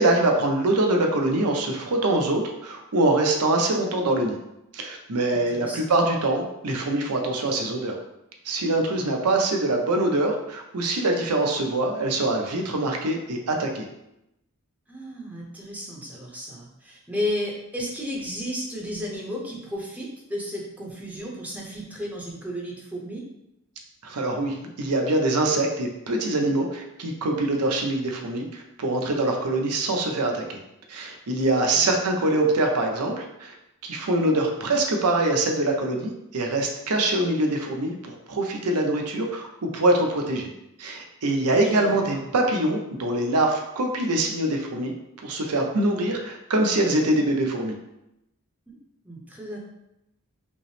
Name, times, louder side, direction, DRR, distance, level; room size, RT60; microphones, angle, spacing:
voice 1, 0.0-4.4 4.7-8.0 8.4-13.9 24.0-30.6 30.9-33.5 33.8-40.5 40.8-44.9 45.2-47.7, right 2 dB, 90° right, 2 dB, 0.7 m, -24 dB
voice 2, 5.3-5.9 14.9-23.2 31.7-32.1 41.6-42.2 48.7-48.8 49.0-49.6, left 1 dB, 5° right, -3 dB, 0.7 m, -33 dB
5.3 x 2.0 x 3.2 m, 0.86 s
head